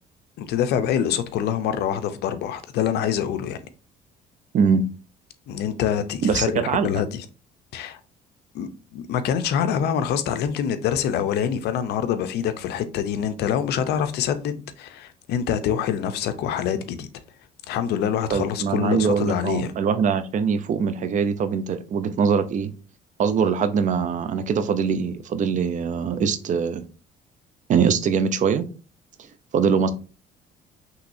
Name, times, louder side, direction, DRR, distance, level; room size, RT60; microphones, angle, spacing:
voice 1, 0.4-3.6 5.5-7.2 7.7-8.0 8.5-17.1 17.7-19.7, left 9 dB, 75° left, 0.6 m, -25 dB
voice 2, 4.5-4.9 6.2-7.0 18.3-22.7 23.2-26.9 27.7-28.7 29.5-29.9, right 6 dB, 50° right, 0.6 m, -22 dB
5.7 x 3.1 x 2.6 m
cardioid pair, 110°, 17 cm